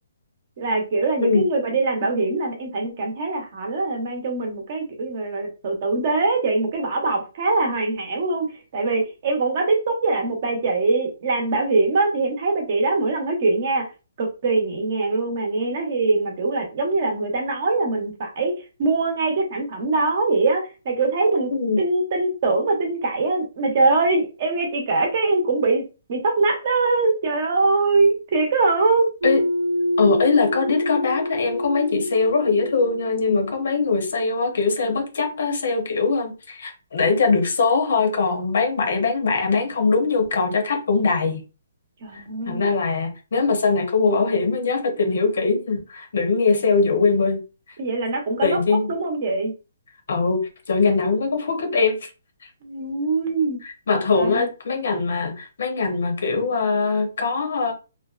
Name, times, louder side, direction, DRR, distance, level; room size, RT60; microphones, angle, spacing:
voice 1, 0.6-8.5 8.7-13.9 14.2-18.5 18.8-21.5 21.8-25.8 26.1-29.1 42.0-42.7 47.8-49.5 52.6-53.6 54.1-54.5, right 3 dB, 40° right, 0.7 m, -22 dB
sound 1, 29.2-33.9, left 1 dB, 80° right, 0.6 m, -26 dB
voice 2, 30.0-41.4 42.5-47.4 48.4-48.9 50.1-52.0 53.9-57.7, left 4 dB, 60° left, 0.8 m, -21 dB
2.6 x 2.1 x 2.4 m
hypercardioid pair, 165°, 0 cm